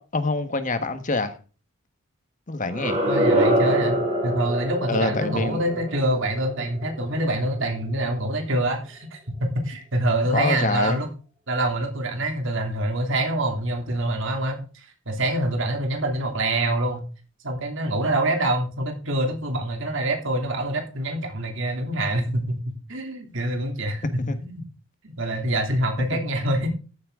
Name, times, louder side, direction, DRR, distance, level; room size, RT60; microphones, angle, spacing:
voice 1, 0.1-1.4 2.5-3.0 4.9-5.6 10.3-11.0 24.2-24.4, left 3 dB, 40° left, 1.5 m, -25 dB
sound 1, 2.7-7.6, right 1 dB, 30° right, 4.5 m, -25 dB
voice 2, 3.1-11.1 11.5-17.0 17.4-24.6 25.0-26.7, right 1 dB, 65° right, 3.0 m, -26 dB
14.0 x 8.7 x 3.8 m
head